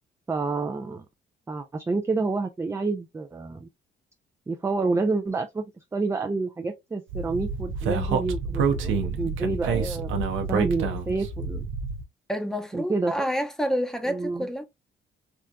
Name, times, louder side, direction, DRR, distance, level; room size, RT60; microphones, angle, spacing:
voice 1, 0.3-1.0 1.5-3.7 4.5-10.2 10.5-11.7 12.7-13.3 14.0-14.5, right 3 dB, 15° right, 0.4 m, -29 dB
Speech, 7.1-12.0, right 5 dB, 85° right, 0.7 m, -28 dB
voice 2, 12.3-14.7, equal, ahead, 0.8 m, -28 dB
3.5 x 2.7 x 2.2 m
cardioid pair, 90°, 20 cm